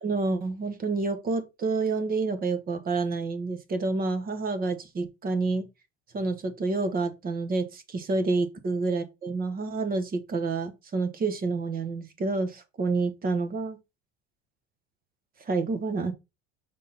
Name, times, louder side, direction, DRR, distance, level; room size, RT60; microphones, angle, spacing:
voice 1, 0.0-5.7 6.1-13.8 15.5-16.1, right 3 dB, 30° right, 1.2 m, -28 dB
7.0 x 3.7 x 4.0 m
cardioid pair, 125°, 30 cm